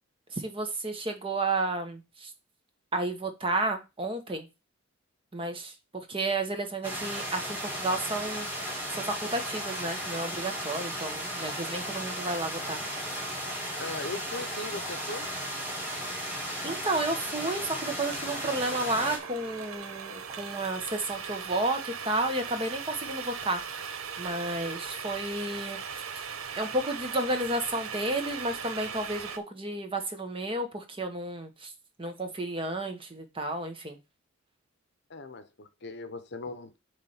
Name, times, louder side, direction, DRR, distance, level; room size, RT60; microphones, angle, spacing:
voice 1, 0.3-2.3 2.9-4.5 5.3-12.8 16.6-25.8 26.6-31.7 32.0-34.0, right 2 dB, 25° right, 1.1 m, -32 dB
sound 1, 6.8-19.2, equal, 10° right, 2.4 m, -35 dB
voice 2, 13.8-15.3 35.1-36.7, left 2 dB, 55° left, 0.8 m, -39 dB
sound 2, 18.1-29.4, right 6 dB, 85° right, 0.8 m, -39 dB
7.2 x 3.3 x 5.6 m
head